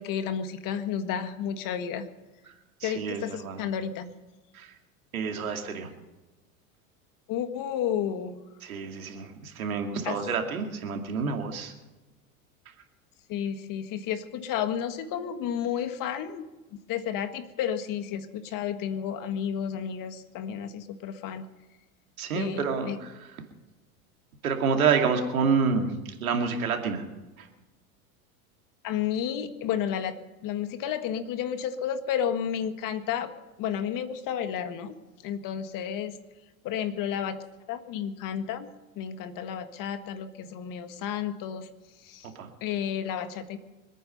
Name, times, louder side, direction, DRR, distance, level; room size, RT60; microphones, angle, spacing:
voice 1, 0.0-2.0 2.8-4.1 7.3-8.4 10.0-10.2 13.3-16.5 16.9-21.4 22.3-23.0 28.8-30.2 30.4-33.3 33.6-34.9 35.2-36.1 36.6-37.4 37.7-38.7 39.0-41.7 42.0-42.3 42.6-43.6, left 9 dB, 50° left, 9 dB, 1.8 m, -31 dB
voice 2, 2.8-3.6 4.5-4.7 5.1-5.9 8.6-11.7 22.2-23.3 24.4-27.0 27.4-27.5 42.2-42.5, right 5 dB, 90° right, 4 dB, 2.4 m, -28 dB
25.5 x 9.3 x 5.5 m, 1.1 s
hypercardioid pair, 90°, 41 cm